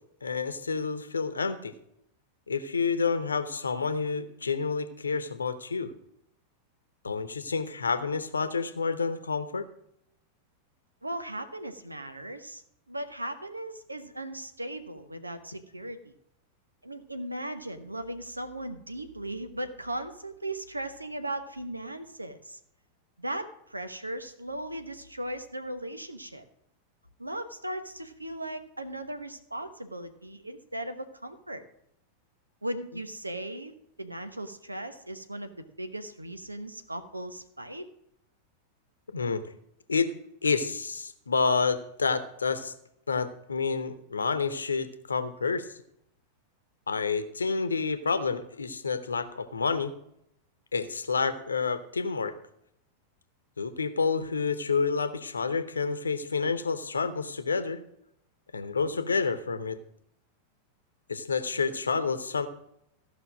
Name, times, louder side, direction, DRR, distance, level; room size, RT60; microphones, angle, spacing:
voice 1, 0.2-1.7 2.5-5.9 7.0-9.7 39.1-39.4 39.9-40.1 40.4-42.7 43.1-45.7 46.9-49.9 50.7-52.3 53.6-57.8 58.5-59.8 61.1-62.5, left 5 dB, 75° left, 12 dB, 0.9 m, -29 dB
voice 2, 11.0-12.6 12.9-16.1 16.8-22.6 23.2-26.4 27.2-31.6 32.6-33.7 34.0-35.5 35.8-37.8, right 1 dB, 85° right, 9 dB, 1.0 m, -37 dB
15.0 x 5.6 x 6.3 m, 0.75 s
figure-of-eight pair, 90°, 0 cm